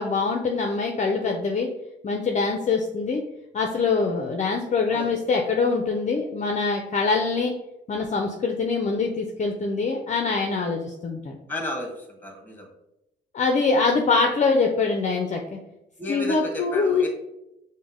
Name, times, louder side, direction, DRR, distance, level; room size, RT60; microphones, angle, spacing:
voice 1, 0.0-1.7 2.0-3.2 3.5-7.5 7.9-11.4 13.3-15.6 16.1-17.1, left 4 dB, 40° left, 2 dB, 0.5 m, -24 dB
voice 2, 11.5-12.7 16.0-17.1, left 1 dB, 10° left, 1 dB, 1.2 m, -32 dB
5.1 x 2.1 x 3.5 m, 0.87 s
cardioid pair, 90°, 20 cm